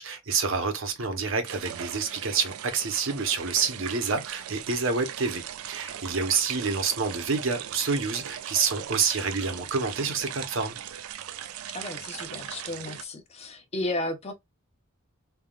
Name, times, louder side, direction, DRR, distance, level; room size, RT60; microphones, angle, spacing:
voice 1, 0.0-10.8, right 5 dB, 65° right, 0.8 m, -28 dB
sound 1, 1.4-13.0, right 10 dB, 85° right, 0.4 m, -39 dB
voice 2, 11.7-14.3, left 2 dB, 30° left, 0.6 m, -33 dB
3.4 x 2.3 x 2.3 m
head